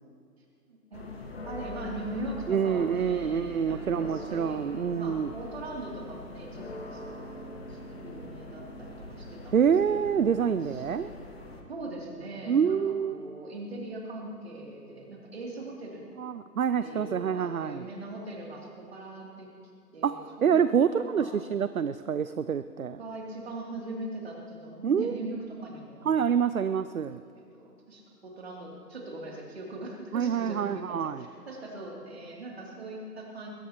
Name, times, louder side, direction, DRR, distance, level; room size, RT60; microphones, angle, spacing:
voice 1, 0.7-1.1 1.4-9.6 10.0-10.2 10.6-10.8 11.7-16.0 16.8-19.5 19.9-21.3 23.0-26.3 27.3-33.5, right 2 dB, 40° right, -2 dB, 2.9 m, -41 dB
sound 1, 0.9-11.6, left 2 dB, 40° left, 1.5 m, -42 dB
voice 2, 2.5-5.3 9.5-11.1 12.5-13.2 16.2-17.8 20.0-20.1 20.4-23.0 24.8-25.2 26.0-27.2 30.1-31.2, right 7 dB, 60° right, 13 dB, 0.5 m, -26 dB
21.5 x 16.5 x 3.0 m, 2.4 s
figure-of-eight pair, 155°, 49 cm